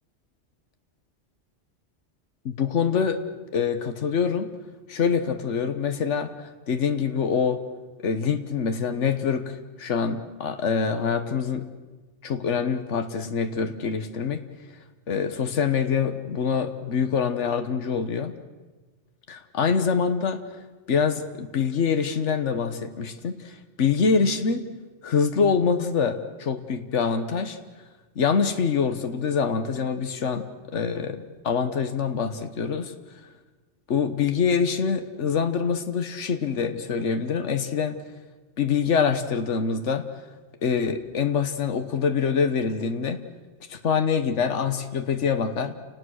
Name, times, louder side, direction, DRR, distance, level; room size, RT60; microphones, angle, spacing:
voice 1, 2.4-3.2 3.5-4.5 4.9-7.6 8.0-11.7 12.2-14.4 15.1-18.3 19.3-20.4 20.9-24.6 25.0-27.6 28.2-30.4 30.7-32.9 33.9-38.0 38.6-40.1 40.6-43.2 43.7-45.7, left 6 dB, 80° left, 8 dB, 1.5 m, -25 dB
30.0 x 19.0 x 6.4 m, 1.3 s
omnidirectional pair, 1.2 m